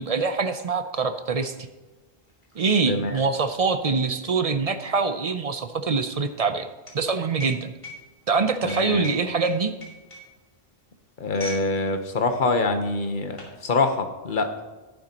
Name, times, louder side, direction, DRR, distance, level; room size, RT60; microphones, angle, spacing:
voice 1, 0.0-1.5 2.6-6.7 6.9-7.7 8.3-9.7, right 4 dB, 45° right, 9 dB, 0.5 m, -24 dB
sound 1, 1.7-11.7 12.0-12.3 12.9-13.6, equal, 25° left, 2.5 m, -42 dB
voice 2, 2.9-3.2 8.6-9.1 11.2-14.5, left 3 dB, 50° left, 6 dB, 1.1 m, -25 dB
11.5 x 10.5 x 2.9 m, 1.2 s
omnidirectional pair, 1.2 m